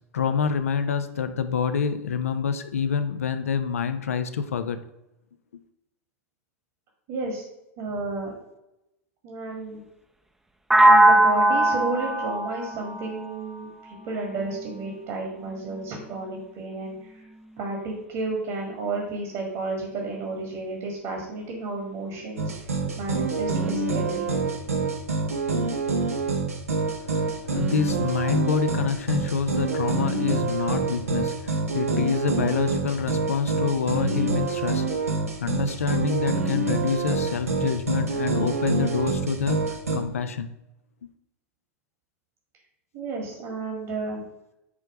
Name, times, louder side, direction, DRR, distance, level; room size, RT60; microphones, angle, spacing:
voice 1, 0.1-4.8 5.5-5.6 27.0-40.5 41.0-41.1, left 6 dB, 75° left, 0.7 m, -27 dB
voice 2, 7.1-7.4 7.8-8.3 9.2-9.8 10.8-17.3 17.6-22.5 23.0-24.3 42.9-44.2, right 3 dB, 50° right, 2.0 m, -32 dB
sound 1, 10.7-14.6, right 1 dB, 5° right, 0.7 m, -20 dB
sound 2, 22.4-40.0, right 4 dB, 80° right, 1.1 m, -26 dB
9.7 x 3.4 x 4.9 m
figure-of-eight pair, 90°, 8 cm